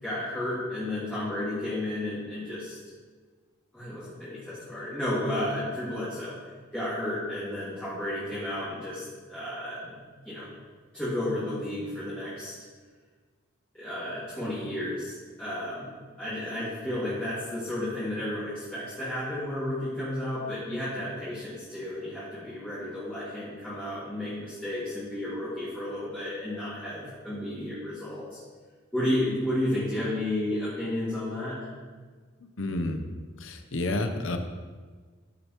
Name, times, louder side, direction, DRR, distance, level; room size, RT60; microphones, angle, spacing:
voice 1, 0.0-2.8 3.7-6.4 6.7-10.5 10.9-12.5 13.7-28.4 28.9-31.7, left 1 dB, 5° left, -11 dB, 2.2 m, -32 dB
voice 2, 32.6-33.0 33.4-34.4, left 2 dB, 70° left, 6 dB, 0.8 m, -30 dB
14.0 x 6.5 x 3.1 m, 1.5 s
head